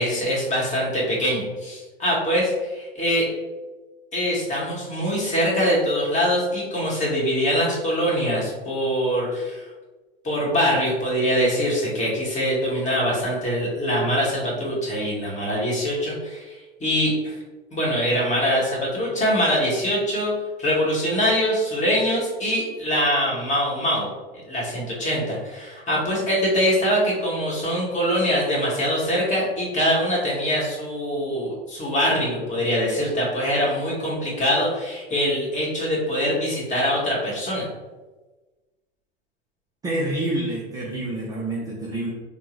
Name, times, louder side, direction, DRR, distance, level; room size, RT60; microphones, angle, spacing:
voice 1, 0.0-3.3 4.1-9.6 10.2-17.3 17.7-20.3 20.6-24.1 24.5-37.7, equal, 25° left, -5 dB, 1.3 m, -23 dB
voice 2, 39.8-42.1, right 1 dB, 15° right, -3 dB, 0.3 m, -27 dB
3.4 x 2.1 x 3.0 m, 1.2 s
hypercardioid pair, 95°, 30 cm